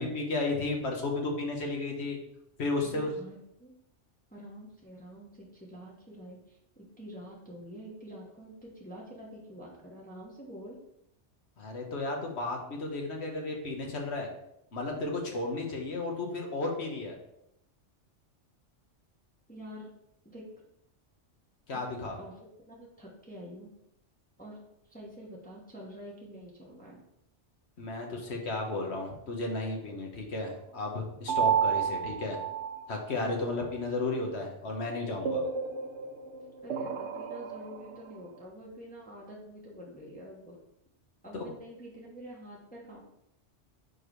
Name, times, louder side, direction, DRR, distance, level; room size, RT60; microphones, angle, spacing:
voice 1, 0.0-2.2 2.6-3.1 11.6-14.3 14.7-17.1 21.7-22.1 27.8-32.4 32.9-35.4 41.3-41.5, left 2 dB, 65° left, 1 dB, 1.4 m, -33 dB
voice 2, 2.8-3.7 4.3-10.8 19.5-19.9 20.2-20.5 22.2-22.4 22.6-23.7 24.4-24.6 24.8-27.0 36.6-40.6 41.2-43.1, equal, 10° left, -3 dB, 1.1 m, -47 dB
sound 1, 31.3-33.1 35.2-38.0, right 7 dB, 75° right, 0.9 m, -31 dB
4.9 x 4.5 x 4.5 m, 0.80 s
omnidirectional pair, 1.2 m